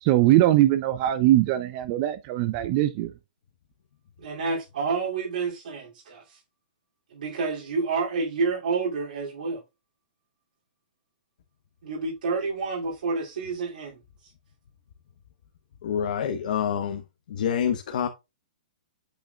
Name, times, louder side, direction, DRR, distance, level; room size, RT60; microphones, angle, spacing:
voice 1, 0.0-3.1, right 14 dB, 35° right, 0.5 m, -21 dB
voice 2, 4.2-6.4 7.1-9.6 11.8-14.0, right 4 dB, 75° right, 2.7 m, -29 dB
voice 3, 15.8-17.0 17.3-18.1, left 8 dB, 65° left, 1.0 m, -27 dB
8.2 x 6.3 x 2.3 m
hypercardioid pair, 145°, 5 cm